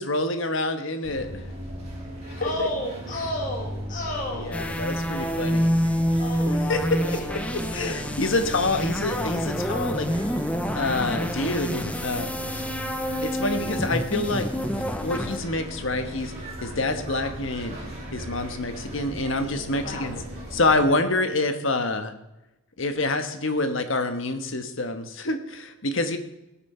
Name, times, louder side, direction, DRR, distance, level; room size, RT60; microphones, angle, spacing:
voice 1, 0.0-1.4 2.4-2.7 4.3-5.7 6.4-10.1 10.7-12.6 13.2-14.5 14.7-16.3 16.6-17.8 18.1-20.2 20.5-22.1 22.8-26.2, left 2 dB, 60° left, 8 dB, 1.4 m, -27 dB
sound 1, 1.0-20.8, equal, 30° right, 4.5 m, -37 dB
voice 2, 2.4-4.7 6.2-6.6 7.8-7.9 19.7-20.1, left 1 dB, 35° left, -2 dB, 2.0 m, -32 dB
sound 2, 4.5-15.4, equal, 5° left, 0.7 m, -28 dB
17.5 x 8.8 x 4.5 m, 0.92 s
head